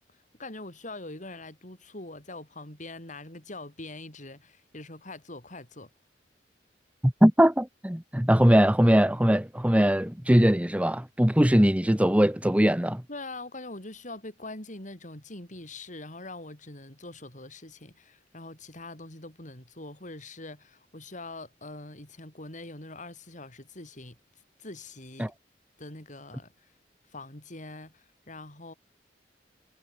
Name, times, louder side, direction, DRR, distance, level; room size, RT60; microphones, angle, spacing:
voice 1, 0.4-5.9 13.1-24.2 24.6-25.3 25.8-26.7 27.1-28.7, left 2 dB, 45° left, 7.4 m, -43 dB
voice 2, 7.0-13.0 25.2-25.3, equal, 10° right, 1.1 m, -21 dB
head